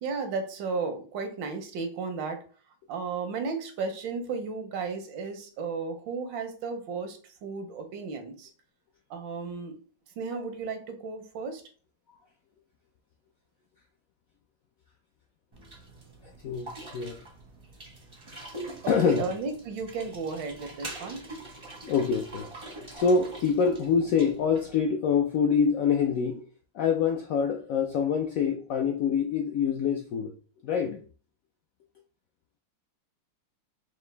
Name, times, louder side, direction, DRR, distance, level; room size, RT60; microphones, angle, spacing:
voice 1, 0.0-2.4 2.9-8.5 9.1-9.8 10.2-11.6 18.8-21.2, right 4 dB, 85° right, 1.5 m, -34 dB
sound 1, 15.5-24.8, right 2 dB, 35° right, 0.4 m, -44 dB
voice 2, 16.4-17.2 18.9-19.3 21.9-22.5 22.9-26.5 26.7-30.3 30.6-31.0, left 6 dB, 80° left, 0.7 m, -25 dB
4.9 x 2.5 x 3.2 m
omnidirectional pair, 2.0 m